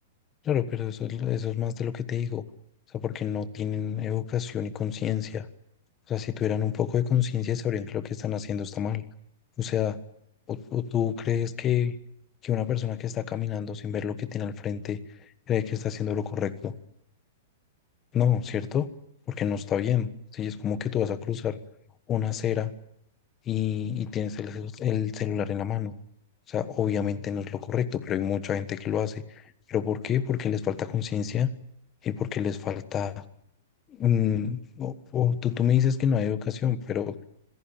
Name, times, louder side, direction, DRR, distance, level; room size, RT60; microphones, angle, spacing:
voice 1, 0.4-2.4 2.9-5.5 6.1-9.0 9.6-10.0 10.5-12.0 12.4-15.0 15.5-16.7 18.1-18.9 19.3-21.6 22.1-22.7 23.5-25.9 26.5-31.5 32.0-33.2 33.9-37.1, left 9 dB, 20° left, 13 dB, 1.3 m, -28 dB
26.5 x 17.0 x 9.0 m, 0.79 s
hypercardioid pair, 165°, 0 cm